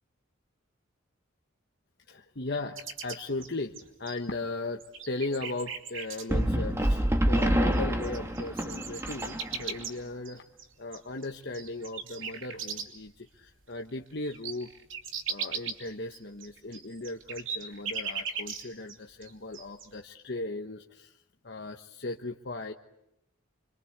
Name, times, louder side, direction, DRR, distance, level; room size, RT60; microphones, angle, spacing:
voice 1, 2.1-10.4 10.8-14.7 15.3-21.2 21.4-22.7, left 2 dB, 55° left, 3 dB, 1.2 m, -37 dB
sound 1, 2.8-4.4 4.8-6.2 7.4-7.5 7.7-13.1 13.5-13.6 13.9-19.0 19.2-19.9, right 6 dB, 75° right, 3.3 m, -38 dB
sound 2, 6.3-9.8, equal, 15° right, 1.8 m, -27 dB
26.5 x 25.5 x 8.1 m, 0.81 s
head